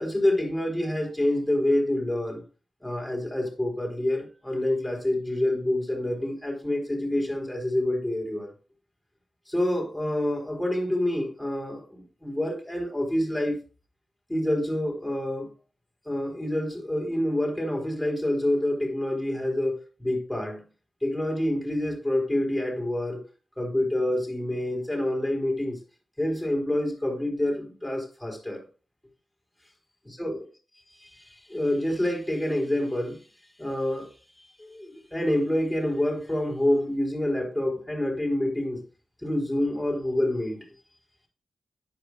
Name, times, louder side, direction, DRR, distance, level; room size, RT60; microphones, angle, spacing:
voice 1, 0.0-2.4 2.8-8.5 9.5-13.6 14.3-15.5 16.1-20.6 21.0-23.2 23.6-25.8 26.2-28.6 30.2-30.4 31.5-33.2 33.6-34.1 34.6-38.8 39.2-40.6, left 1 dB, 5° left, 4.2 m, -27 dB
11.5 x 10.5 x 2.4 m
wide cardioid pair, 170°, 0 cm